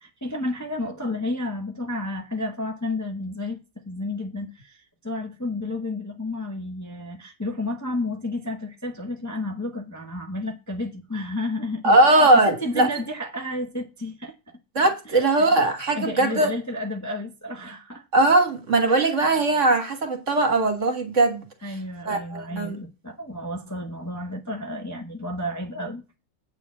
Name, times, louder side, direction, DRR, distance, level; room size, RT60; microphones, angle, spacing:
voice 1, 0.0-14.6 15.1-18.0 18.9-19.2 21.6-26.0, left 2 dB, 15° left, 0.8 m, -32 dB
voice 2, 11.8-12.9 14.8-16.5 18.1-21.4 22.1-22.8, right 2 dB, 50° right, 1.8 m, -20 dB
8.3 x 4.5 x 7.3 m
omnidirectional pair, 1.7 m